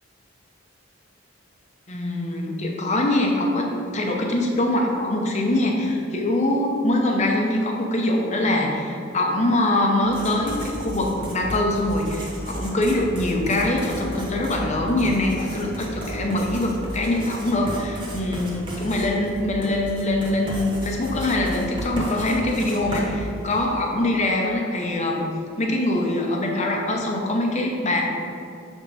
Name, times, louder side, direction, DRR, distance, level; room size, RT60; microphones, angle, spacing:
voice 1, 1.9-25.3 25.6-28.0, left 1 dB, 35° left, 0 dB, 0.8 m, -23 dB
Writing, 10.0-23.8, right 1 dB, 25° right, 1.1 m, -34 dB
6.3 x 3.6 x 5.5 m, 2.5 s
head